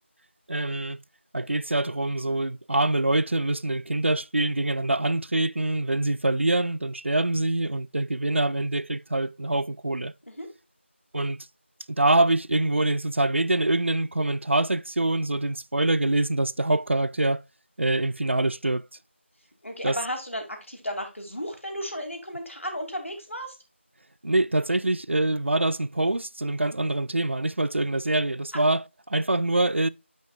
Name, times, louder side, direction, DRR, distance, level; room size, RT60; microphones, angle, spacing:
voice 1, 0.5-1.0 1.3-10.1 11.1-11.5 11.9-17.4 17.8-18.9 19.8-20.0 24.2-29.9, right 2 dB, 65° right, 0.3 m, -25 dB
voice 2, 19.6-23.6, equal, 80° left, 2.6 m, -34 dB
9.3 x 5.3 x 2.4 m
figure-of-eight pair, 175°, 7 cm